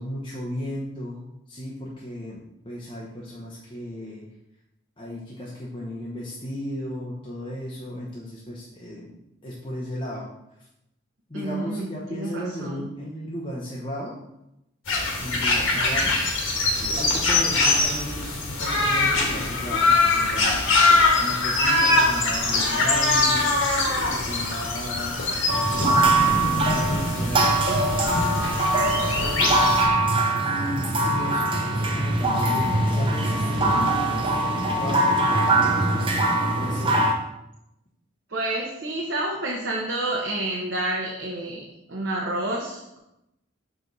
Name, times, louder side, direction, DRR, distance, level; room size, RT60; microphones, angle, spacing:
voice 1, 0.0-4.2 5.0-9.1 9.4-10.3 11.3-14.2 15.2-16.1 17.0-20.6 21.2-23.5 24.1-25.3 25.7-29.7 30.4-34.5 34.7-35.8 36.5-37.1, equal, 25° left, -5 dB, 0.9 m, -35 dB
voice 2, 11.3-12.9 33.4-33.9 38.3-43.0, right 1 dB, 60° right, -2 dB, 1.0 m, -29 dB
sound 1, 14.9-29.8, left 3 dB, 75° left, 1.5 m, -23 dB
sound 2, 25.5-37.1, right 2 dB, 25° right, 0.6 m, -22 dB
6.2 x 5.0 x 4.0 m, 0.87 s
head